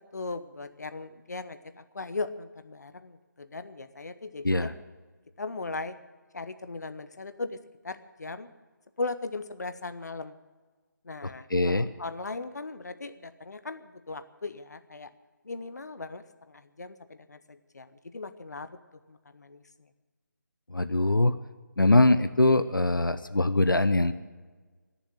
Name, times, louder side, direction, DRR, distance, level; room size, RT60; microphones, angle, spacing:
voice 1, 0.1-4.7 5.4-5.9 6.3-7.6 7.8-8.5 9.0-10.4 11.0-15.1 15.4-18.8 19.1-19.6, left 3 dB, 55° left, 11 dB, 1.0 m, -38 dB
voice 2, 11.2-11.9 20.7-21.3 21.8-24.1, left 2 dB, 90° left, 12 dB, 0.7 m, -23 dB
19.0 x 7.3 x 10.0 m, 1.4 s
figure-of-eight pair, 155°, 11 cm